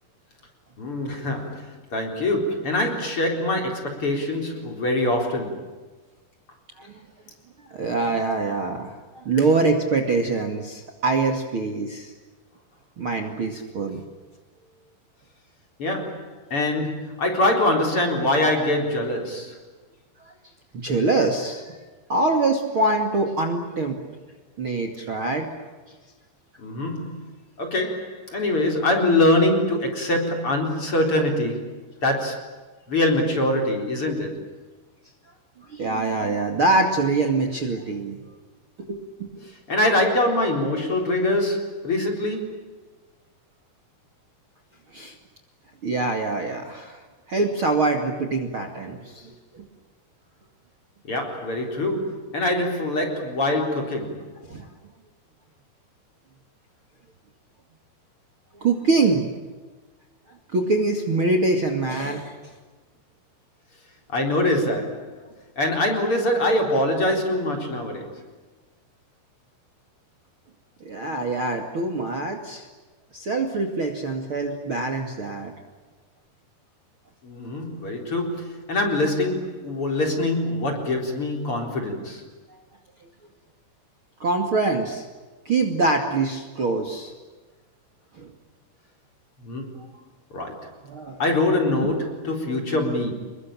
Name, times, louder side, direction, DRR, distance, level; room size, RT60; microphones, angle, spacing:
voice 1, 0.8-5.7 15.8-19.6 26.6-27.3 27.6-31.8 32.0-32.6 32.9-34.5 39.4-42.6 51.1-54.3 64.1-65.1 65.6-68.3 77.2-82.2 89.4-89.8 90.3-90.8 91.2-93.1, left 1 dB, 35° left, 3 dB, 4.6 m, -24 dB
voice 2, 7.7-12.1 13.0-14.0 20.2-20.3 20.7-21.8 22.1-24.0 24.6-25.5 35.7-38.2 38.9-39.3 44.9-45.1 45.8-47.0 47.3-49.6 54.5-54.6 58.6-59.3 60.5-62.3 70.8-72.7 73.1-75.5 84.2-85.0 85.5-87.1 88.2-88.3 90.8-91.2 91.8-91.9, right 3 dB, 35° right, 5 dB, 2.6 m, -24 dB
28.0 x 22.0 x 8.8 m, 1.3 s
omnidirectional pair, 4.7 m